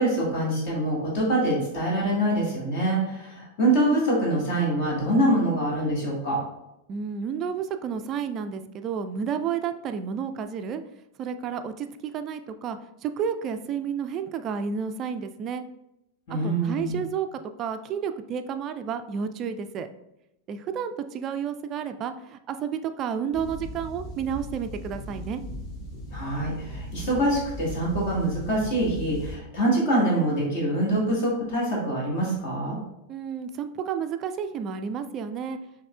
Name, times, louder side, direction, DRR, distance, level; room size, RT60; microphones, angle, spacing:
voice 1, 0.0-6.4 16.3-17.0 26.1-32.8, right 1 dB, 50° left, -3 dB, 1.6 m, -25 dB
voice 2, 6.9-10.8 11.2-15.6 16.4-19.9 20.5-25.4 33.1-35.6, right 7 dB, 30° right, 9 dB, 0.3 m, -31 dB
sound 1, 23.3-29.4, equal, 35° left, 1.5 m, -38 dB
6.3 x 3.5 x 2.2 m, 0.87 s
figure-of-eight pair, 90°, 0 cm